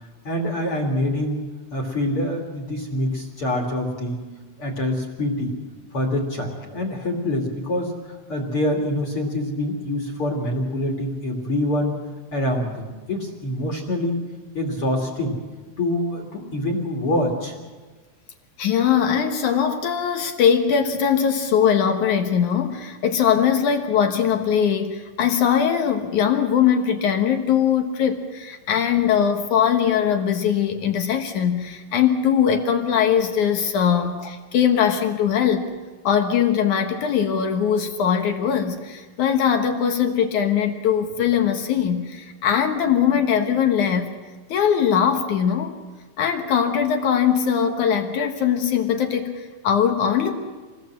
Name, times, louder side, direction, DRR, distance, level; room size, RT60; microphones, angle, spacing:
voice 1, 0.2-1.4 1.7-4.2 4.6-5.5 5.9-11.9 12.3-14.2 14.5-15.4 15.8-17.5, left 1 dB, 35° left, 1 dB, 2.5 m, -25 dB
voice 2, 18.6-35.7 36.0-44.1 44.5-45.8 46.2-50.3, left 8 dB, 70° left, 5 dB, 1.9 m, -21 dB
27.5 x 20.0 x 7.6 m, 1.4 s
omnidirectional pair, 5.4 m